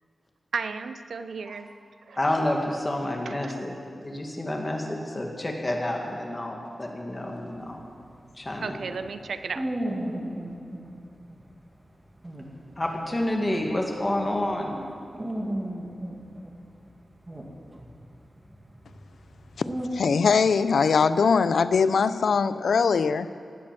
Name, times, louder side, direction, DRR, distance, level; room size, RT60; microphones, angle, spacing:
voice 1, 0.5-1.7 2.1-2.2 3.3-3.6 8.6-9.7, right 5 dB, 85° right, 0.7 m, -34 dB
voice 2, 2.2-3.8 4.0-7.9 8.3-8.9 12.8-14.8, left 1 dB, 25° left, 2.0 m, -29 dB
sound 1, 7.5-10.8 11.2-11.4 11.8-11.9 12.2-14.8 15.1-17.0 17.3-19.9, right 1 dB, 20° right, 2.0 m, -35 dB
voice 3, 19.9-23.3, left 5 dB, 90° left, 0.4 m, -21 dB
18.5 x 8.7 x 7.6 m
wide cardioid pair, 115°, 0 cm